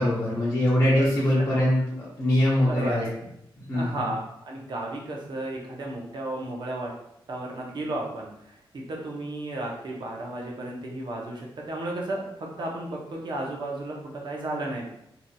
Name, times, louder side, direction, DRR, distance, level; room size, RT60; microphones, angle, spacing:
voice 1, 0.0-3.0 3.7-4.0, left 1 dB, 25° left, -8 dB, 0.8 m, -23 dB
voice 2, 2.7-3.1 3.7-6.9 7.3-14.9, right 2 dB, 55° right, -1 dB, 0.7 m, -33 dB
2.7 x 2.6 x 2.2 m, 0.78 s
wide cardioid pair, 95°, 9 cm